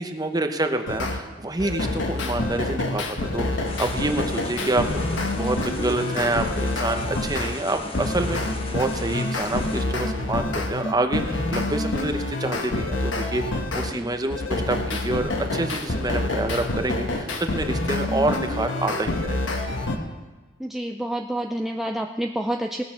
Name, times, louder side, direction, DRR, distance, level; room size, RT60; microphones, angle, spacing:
voice 1, 0.0-4.9 5.3-19.7, right 2 dB, 20° right, 6 dB, 0.8 m, -27 dB
sound 1, 0.9-1.2 1.6-7.6 7.9-13.9 14.3-20.0, left 2 dB, 75° left, 1.2 m, -27 dB
sound 2, 3.6-9.8, left 2 dB, 30° left, 1.2 m, -37 dB
voice 2, 13.9-14.2 20.6-22.8, right 1 dB, ahead, 3 dB, 0.4 m, -29 dB
18.5 x 6.6 x 5.9 m, 1.2 s
head